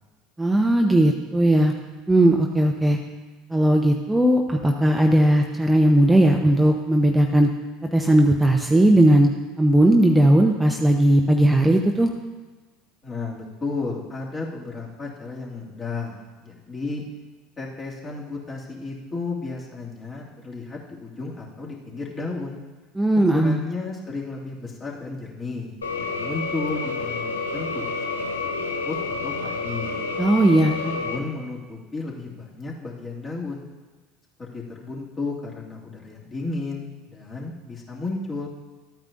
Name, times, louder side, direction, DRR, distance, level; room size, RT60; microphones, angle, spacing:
voice 1, 0.4-1.7 2.1-3.0 3.5-7.5 7.9-9.3 9.6-12.1 23.0-23.6 30.2-30.7, right 1 dB, 10° right, 2 dB, 0.7 m, -17 dB
voice 2, 13.0-17.0 17.6-22.6 23.3-27.9 28.2-30.0 30.8-33.6 34.4-38.5, left 3 dB, 30° left, -4 dB, 2.4 m, -33 dB
sound 1, 25.8-31.2, left 3 dB, 90° left, 0.7 m, -29 dB
13.0 x 9.0 x 2.6 m, 1.3 s
hypercardioid pair, 75°, 0 cm